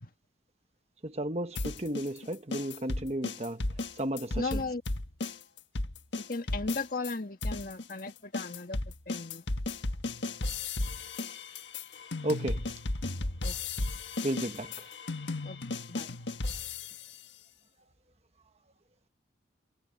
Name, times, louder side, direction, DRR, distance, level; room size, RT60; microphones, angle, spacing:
voice 1, 1.0-3.7 4.0-4.6 12.2-12.7 14.2-14.9, right 1 dB, 35° right, 1.3 m, -33 dB
sound 1, 1.6-7.1 7.4-17.2, left 2 dB, 85° left, 1.4 m, -35 dB
voice 2, 4.3-4.8 6.2-9.4 13.4-13.6 15.4-16.1, left 3 dB, 50° left, 1.7 m, -37 dB
head